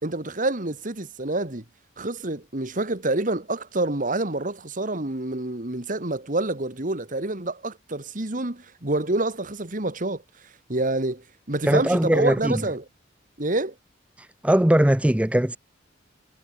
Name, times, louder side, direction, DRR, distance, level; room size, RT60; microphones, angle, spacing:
voice 1, 0.0-1.6 2.0-10.2 10.7-12.8 13.4-13.7, right 2 dB, 45° right, 2.1 m, -27 dB
voice 2, 11.7-12.6 14.2-15.6, right 1 dB, 5° right, 0.6 m, -20 dB
head